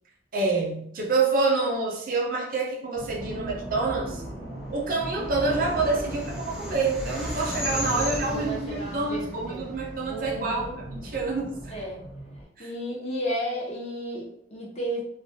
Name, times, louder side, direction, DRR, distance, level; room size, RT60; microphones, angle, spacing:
voice 1, 0.3-4.2 4.7-11.5 12.6-12.7, right 3 dB, 50° right, -1 dB, 0.5 m, -27 dB
sound 1, 2.9-12.4, right 1 dB, 75° left, 1.1 m, -37 dB
sound 2, 4.9-10.4, equal, ahead, 0.5 m, -36 dB
voice 2, 7.7-9.7 10.1-10.8 11.7-12.1 12.6-15.0, equal, 40° left, -3 dB, 0.7 m, -33 dB
2.3 x 2.2 x 2.6 m, 0.69 s
head